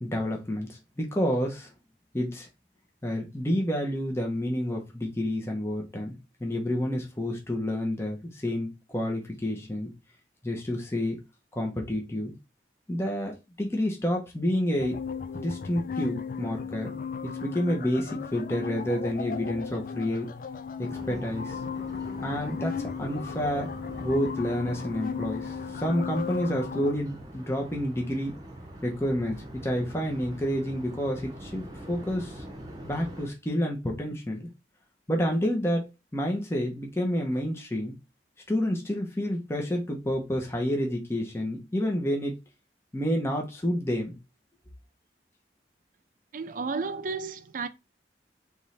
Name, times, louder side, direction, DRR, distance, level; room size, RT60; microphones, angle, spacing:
voice 1, 0.0-1.7 2.1-2.5 3.0-9.9 10.4-11.2 11.5-12.4 12.9-15.0 15.3-20.3 20.8-21.6 22.2-23.7 24.0-28.4 28.8-32.4 32.8-34.5 35.1-37.9 38.5-42.4 42.9-44.2, equal, 15° left, 0.8 m, -29 dB
sound 1, 14.8-26.9, left 6 dB, 50° left, 0.4 m, -36 dB
sound 2, 20.9-33.3, right 1 dB, 20° right, 0.9 m, -44 dB
voice 2, 46.3-47.7, right 4 dB, 50° right, 0.5 m, -32 dB
3.6 x 3.1 x 4.1 m
head